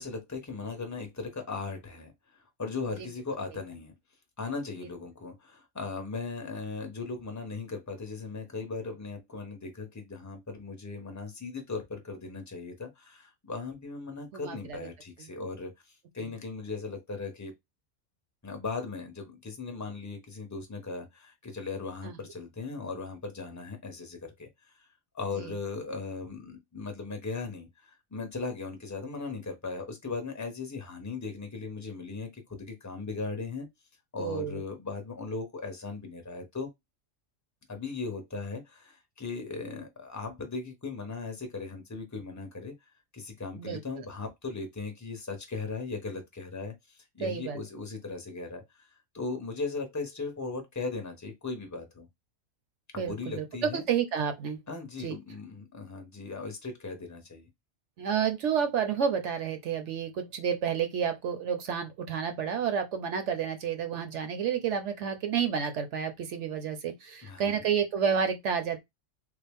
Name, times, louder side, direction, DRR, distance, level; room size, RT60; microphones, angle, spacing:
voice 1, 0.0-2.1 2.6-3.9 4.4-15.7 16.1-17.5 18.4-24.5 25.1-33.7 34.1-36.7 37.7-42.7 43.1-48.9 49.1-52.1 52.9-53.9 54.7-57.5 67.2-67.6, left 4 dB, 15° left, 0.6 m, -38 dB
voice 2, 14.3-14.8 22.0-22.2 25.3-25.5 34.2-34.6 43.6-43.8 47.2-47.6 53.0-54.6 55.0-55.2 58.0-68.8, right 7 dB, 65° right, 0.9 m, -30 dB
3.6 x 2.1 x 3.4 m
omnidirectional pair, 1.4 m